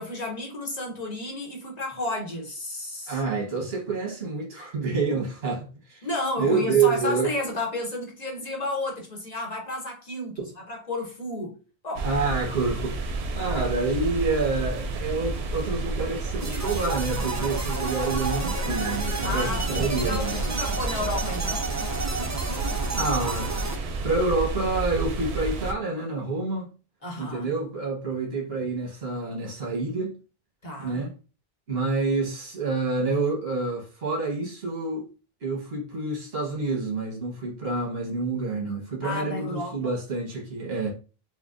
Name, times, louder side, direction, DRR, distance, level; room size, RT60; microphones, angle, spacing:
voice 1, 0.0-3.2 6.0-11.6 11.8-12.1 19.2-21.7 27.0-27.5 30.6-31.0 39.0-39.9, left 2 dB, 45° left, 1.0 m, -32 dB
voice 2, 3.1-6.1 6.4-7.3 12.0-13.1 13.3-20.4 22.9-23.7 24.0-26.7 27.2-30.1 30.8-31.1 31.7-35.1 35.4-40.9, right 3 dB, 70° right, 1.4 m, -28 dB
sound 1, 11.9-25.7, right 3 dB, 90° right, 0.8 m, -30 dB
sound 2, 16.4-23.8, right 3 dB, 25° right, 0.4 m, -32 dB
4.3 x 2.2 x 2.5 m
omnidirectional pair, 1.0 m